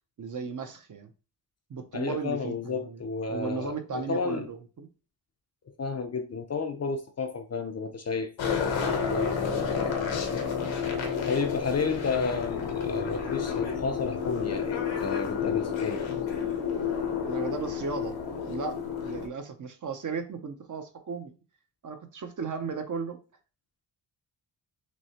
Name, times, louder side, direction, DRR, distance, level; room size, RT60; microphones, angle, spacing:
voice 1, 0.2-1.1 1.7-3.0 3.3-4.9 17.2-18.2 18.5-21.3 21.8-23.2, right 5 dB, 45° right, 0.6 m, -35 dB
voice 2, 1.9-4.5 5.8-10.4 11.3-16.3, left 4 dB, 35° left, 0.4 m, -32 dB
sound 1, 8.4-19.3, left 7 dB, 80° left, 0.9 m, -30 dB
6.1 x 2.0 x 2.8 m
wide cardioid pair, 135°, 45 cm